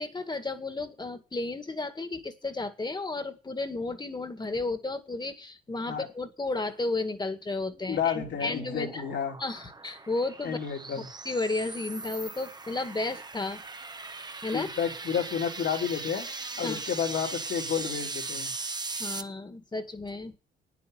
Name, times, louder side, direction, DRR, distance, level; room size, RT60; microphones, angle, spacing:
voice 1, 0.0-9.0 9.4-10.6 10.9-13.6 14.4-14.7 16.6-16.8 19.0-20.4, left 2 dB, 20° left, 8 dB, 2.0 m, -33 dB
sound 1, 7.6-19.2, right 3 dB, 20° right, 1.0 m, -39 dB
voice 2, 7.8-9.4 10.4-11.0 14.5-16.3 16.6-18.5, left 7 dB, 65° left, 2 dB, 3.4 m, -31 dB
9.4 x 8.3 x 9.2 m, 0.32 s
cardioid pair, 90°, 20 cm